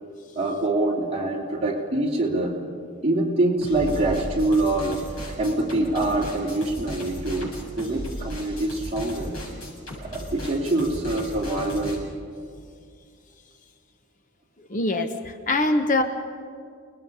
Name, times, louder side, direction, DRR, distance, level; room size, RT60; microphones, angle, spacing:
voice 1, 0.3-2.6 3.0-5.0 5.4-9.3 10.0-12.0, right 2 dB, 30° right, -3 dB, 3.1 m, -25 dB
sound 1, 3.6-12.0, equal, 80° left, 7.9 m, -36 dB
voice 2, 14.7-16.0, left 2 dB, 35° left, 7 dB, 0.9 m, -23 dB
29.5 x 19.5 x 5.6 m, 2.3 s
head